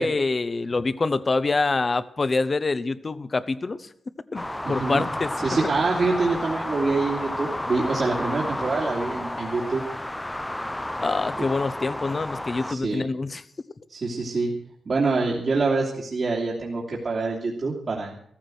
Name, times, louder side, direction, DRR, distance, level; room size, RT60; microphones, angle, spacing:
voice 1, 0.0-3.9 4.3-5.3 11.0-13.4, left 3 dB, 40° left, 15 dB, 0.9 m, -26 dB
sound 1, 4.3-12.7, left 1 dB, 15° left, 0.6 m, -31 dB
voice 2, 4.6-5.0 5.4-9.8 12.6-13.1 13.9-14.5 14.8-18.2, right 3 dB, 55° right, -3 dB, 2.7 m, -25 dB
14.5 x 14.5 x 6.4 m, 0.67 s
cardioid pair, 70°, 0 cm